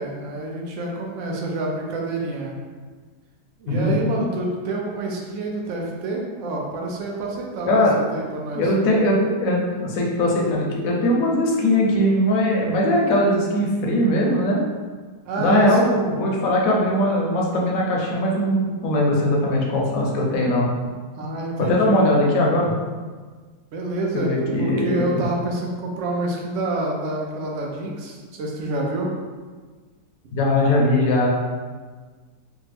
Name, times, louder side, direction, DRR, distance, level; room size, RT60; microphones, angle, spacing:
voice 1, 0.0-2.5 3.6-8.7 15.3-15.8 21.1-22.0 23.7-29.1, right 2 dB, 65° right, -1 dB, 0.8 m, -28 dB
voice 2, 7.7-8.0 8.5-14.6 15.4-20.7 21.6-22.7 24.1-25.2 30.3-31.3, left 1 dB, 65° left, -2 dB, 1.0 m, -20 dB
3.3 x 2.0 x 3.3 m, 1.4 s
omnidirectional pair, 1.8 m